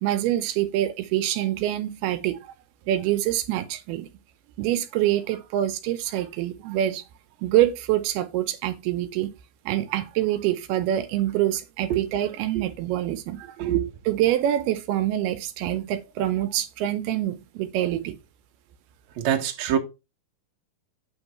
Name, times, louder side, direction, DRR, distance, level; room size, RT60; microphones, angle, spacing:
voice 1, 0.0-2.5 2.9-4.1 4.6-7.0 7.4-9.3 9.7-13.7 14.1-18.2, right 13 dB, 85° right, 2.6 m, -25 dB
voice 2, 13.6-13.9 19.2-19.8, right 10 dB, 60° right, 2.2 m, -24 dB
8.9 x 3.8 x 5.6 m
omnidirectional pair, 4.5 m